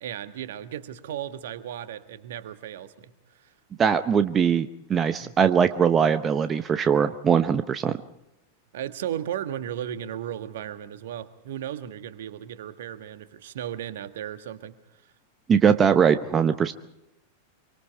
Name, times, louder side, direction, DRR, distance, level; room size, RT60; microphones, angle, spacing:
voice 1, 0.0-3.1 5.2-5.3 8.7-14.8, right 10 dB, 55° right, 11 dB, 1.6 m, -35 dB
voice 2, 3.8-8.0 15.5-16.7, right 7 dB, 25° right, 11 dB, 0.8 m, -21 dB
26.0 x 24.0 x 4.7 m, 0.89 s
figure-of-eight pair, 90°, 0 cm